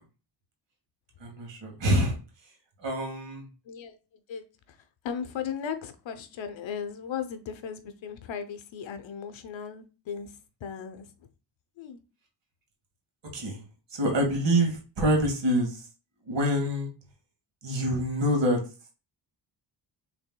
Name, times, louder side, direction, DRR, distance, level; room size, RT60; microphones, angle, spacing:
voice 1, 1.2-2.2 2.8-3.5 13.3-13.6 13.9-15.8 16.3-16.9 17.6-18.6, equal, 70° right, 2 dB, 1.9 m, -26 dB
voice 2, 3.6-11.3 11.8-12.0, left 7 dB, 80° left, 9 dB, 0.8 m, -37 dB
6.1 x 3.4 x 2.2 m, 0.33 s
wide cardioid pair, 115°, 45 cm